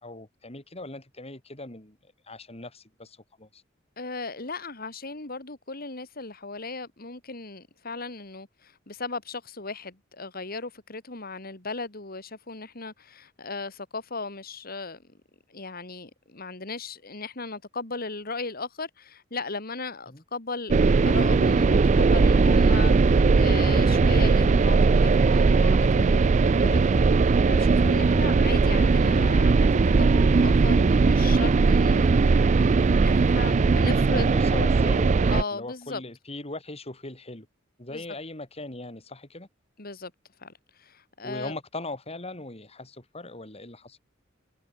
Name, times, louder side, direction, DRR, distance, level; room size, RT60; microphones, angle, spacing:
voice 1, 0.0-3.6 20.1-20.2 33.9-37.5 37.8-39.5 41.2-44.0, left 2 dB, 30° left, 4.5 m, -40 dB
voice 2, 4.0-15.0 15.5-26.3 26.6-29.7 30.0-34.3 35.3-36.0 37.9-38.0 39.8-40.1 40.4-41.6, left 3 dB, 50° left, 2.9 m, -37 dB
sound 1, 20.7-35.4, right 4 dB, 35° right, 0.4 m, -19 dB
head